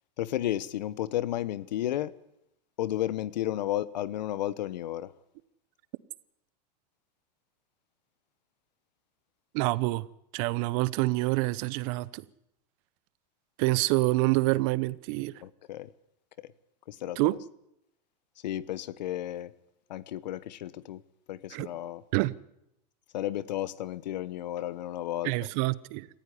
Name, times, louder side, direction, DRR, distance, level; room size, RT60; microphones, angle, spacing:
voice 1, 0.2-2.1 2.8-5.1 15.4-15.9 16.9-17.2 18.4-19.5 19.9-21.0 21.3-22.0 23.1-25.3, left 13 dB, 85° left, 1.1 m, -32 dB
voice 2, 9.5-10.1 10.3-12.2 13.6-15.3 17.2-17.4 21.5-21.7 22.1-22.3 25.2-26.1, right 21 dB, 60° right, 0.9 m, -27 dB
18.0 x 14.5 x 10.0 m
supercardioid pair, 120°, 21 cm